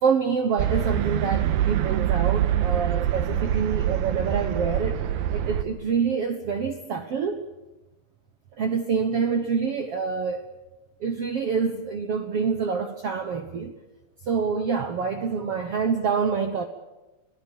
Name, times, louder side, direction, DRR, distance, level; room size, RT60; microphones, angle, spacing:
voice 1, 0.0-5.0 5.3-7.5 8.6-10.4 11.0-13.7 14.2-16.7, right 5 dB, 70° right, 7 dB, 1.4 m, -26 dB
sound 1, 0.6-5.6, right 11 dB, 90° right, 3.2 m, -25 dB
24.5 x 17.5 x 9.4 m, 1.1 s
omnidirectional pair, 4.5 m